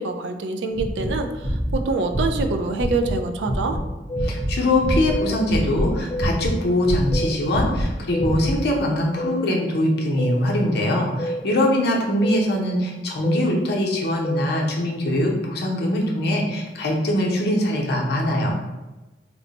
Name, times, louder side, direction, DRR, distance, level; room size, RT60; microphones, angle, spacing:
voice 1, 0.0-3.8, right 3 dB, 75° right, 6 dB, 0.4 m, -25 dB
sound 1, 0.7-3.1 3.4-3.8 4.1-5.2 5.5-6.5 6.8-8.6, equal, 40° right, 0.9 m, -25 dB
sound 2, 4.1-4.3 5.1-5.3 6.1-6.3 7.1-7.3 8.1-8.3 9.2-9.4 10.2-10.4 11.2-11.4 12.2-12.4 13.2-13.4 14.2-14.5, equal, 25° left, 0.3 m, -28 dB
voice 2, 4.2-18.6, left 1 dB, 65° left, -1 dB, 0.7 m, -22 dB
3.0 x 2.1 x 3.9 m, 1.1 s
head